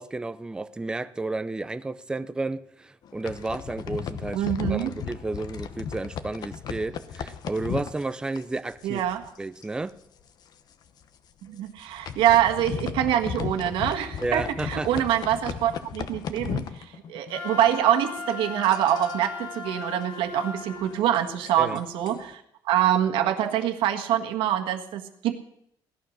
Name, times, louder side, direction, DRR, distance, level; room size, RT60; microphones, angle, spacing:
voice 1, 0.0-9.0 9.4-9.9 14.2-15.1 21.6-21.8, right 2 dB, 10° right, 13 dB, 0.5 m, -32 dB
sound 1, 3.0-9.4 9.6-9.9 10.2-10.3 10.8-11.0 11.6-17.4 17.7-22.3, left 8 dB, 50° left, 1.0 m, -36 dB
voice 2, 4.3-4.9 8.8-9.3 11.4-16.6 17.1-25.4, right 11 dB, 85° right, 5 dB, 1.6 m, -25 dB
Wind instrument woodwind instrument, 17.3-21.0, left 4 dB, 80° left, 3.6 m, -37 dB
17.0 x 11.5 x 6.5 m, 0.74 s
cardioid pair, 145°, 9 cm